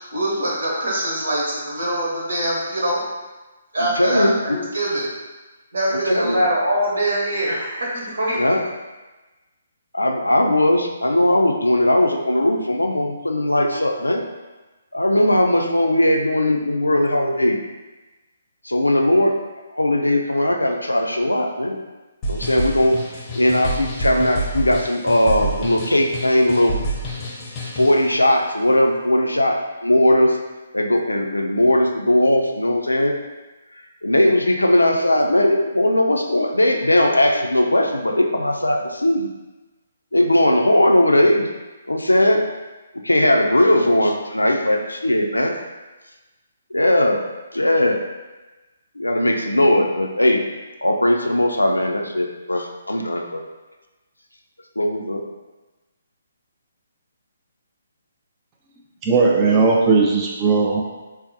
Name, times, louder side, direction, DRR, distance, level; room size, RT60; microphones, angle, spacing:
voice 1, 0.0-3.0 3.7-5.0 5.7-8.4, right 1 dB, 60° right, -4 dB, 1.0 m, -23 dB
voice 2, 4.0-4.6 5.9-6.4 8.3-8.6 9.9-14.2 14.9-17.6 18.7-19.4 19.7-21.8 22.3-23.0 23.3-26.7 27.7-30.4 30.7-33.2 34.0-39.3 40.1-41.5 41.9-42.4 43.0-45.5 46.7-47.2 47.5-48.0 49.0-50.4 50.8-53.4 54.8-55.2, left 1 dB, 80° left, 2 dB, 0.4 m, -18 dB
sound 1, 22.2-28.1, right 1 dB, 20° left, 0.7 m, -28 dB
voice 3, 59.0-60.8, right 4 dB, 20° right, -2 dB, 0.4 m, -17 dB
3.9 x 2.0 x 2.7 m, 1.2 s
figure-of-eight pair, 135°, 0 cm